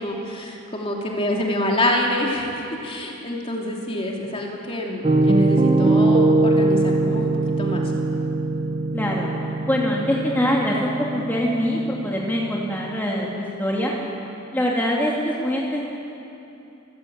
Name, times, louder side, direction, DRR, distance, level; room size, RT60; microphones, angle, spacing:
voice 1, 0.0-7.3 7.6-7.8, left 1 dB, 30° left, -1 dB, 3.0 m, -26 dB
Piano, 5.0-12.9, right 2 dB, 30° right, 1.2 m, -21 dB
voice 2, 8.9-9.3 9.7-13.9 14.5-15.8, equal, 10° left, -4 dB, 2.4 m, -23 dB
26.0 x 15.5 x 8.8 m, 2.9 s
head